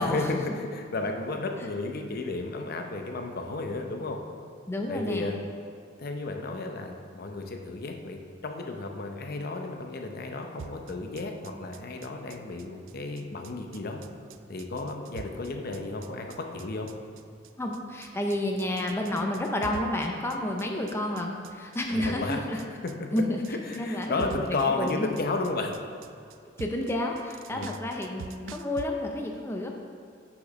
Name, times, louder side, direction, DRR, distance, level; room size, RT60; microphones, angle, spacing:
voice 1, 0.0-4.2 4.9-5.4 6.0-14.0 14.5-16.9 21.9-23.1 23.5-25.7 27.5-27.7, left 3 dB, 55° left, 4 dB, 0.7 m, -33 dB
voice 2, 4.7-5.3 17.6-22.6 23.1-23.4 23.8-25.1 26.6-29.7, left 1 dB, 15° left, 1 dB, 0.5 m, -30 dB
sound 1, 10.6-28.9, right 6 dB, 85° right, 0.3 m, -45 dB
6.2 x 5.9 x 5.2 m, 2.3 s
head